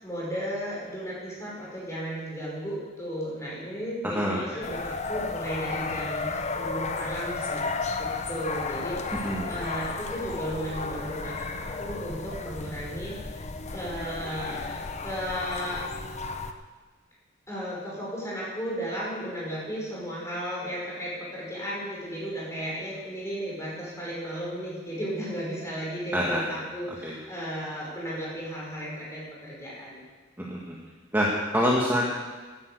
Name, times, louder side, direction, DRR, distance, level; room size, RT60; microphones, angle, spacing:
voice 1, 0.0-7.6 8.0-13.1 13.7-15.8 17.5-30.0, equal, 15° left, -6 dB, 5.6 m, -34 dB
voice 2, 4.0-4.4 9.2-9.5 26.1-26.4 27.0-27.1 30.4-30.6 31.1-32.1, equal, 10° right, -4 dB, 1.5 m, -25 dB
sound 1, 4.6-16.5, left 4 dB, 35° left, 0.8 m, -33 dB
11.0 x 10.0 x 8.1 m, 1.4 s
head